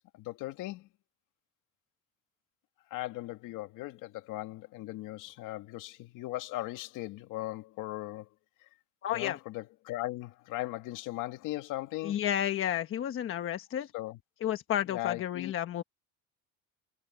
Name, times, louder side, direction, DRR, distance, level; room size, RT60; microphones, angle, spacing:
voice 1, 0.1-0.9 2.9-8.3 8.6-8.7 9.1-12.2 13.9-14.2 14.9-15.5, left 17 dB, 65° left, 2.3 m, -38 dB
voice 2, 9.0-9.4 12.0-13.9 14.4-15.8, left 11 dB, 40° left, 1.2 m, -31 dB
cardioid pair, 140°, 34 cm